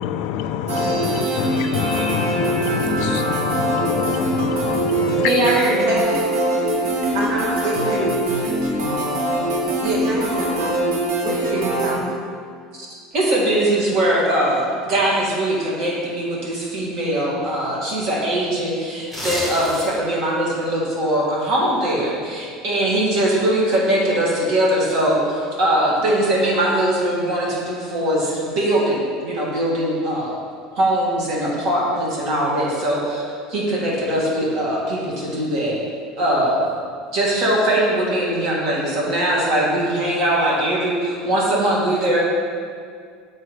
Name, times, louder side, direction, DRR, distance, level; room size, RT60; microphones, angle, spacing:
voice 1, 0.0-5.3, left 9 dB, 55° left, 10 dB, 0.3 m, -26 dB
sound 1, 0.7-12.0, right 1 dB, 75° right, 1.6 m, -22 dB
voice 2, 1.1-1.4 5.2-5.9 12.7-12.9 13.1-30.4 30.8-33.2 33.5-35.8 36.2-36.6 37.1-42.2, right 1 dB, 45° right, -5 dB, 2.0 m, -21 dB
voice 3, 5.9-6.2 7.1-8.2 9.8-10.8 11.2-12.1, right 1 dB, 60° right, -4 dB, 2.0 m, -26 dB
sound 2, 19.0-20.1 20.5-20.7, equal, 10° right, 1.4 m, -29 dB
7.4 x 4.6 x 5.0 m, 2.1 s
cardioid pair, 175°, 0 cm